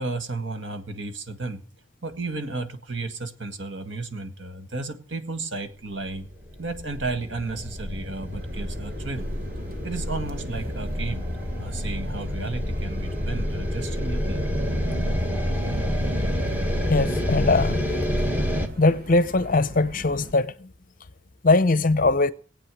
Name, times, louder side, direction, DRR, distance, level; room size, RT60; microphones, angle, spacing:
voice 1, 0.0-1.6 2.0-6.3 6.6-9.3 9.8-11.2 11.6-14.4, right 3 dB, 65° right, 1.7 m, -33 dB
sound 1, 6.1-18.7, equal, 10° right, 1.6 m, -28 dB
sound 2, 8.3-20.3, equal, 45° right, 1.1 m, -41 dB
voice 2, 16.9-17.9 18.8-20.7 21.4-22.3, left 3 dB, 40° left, 0.7 m, -21 dB
20.0 x 8.5 x 6.1 m
head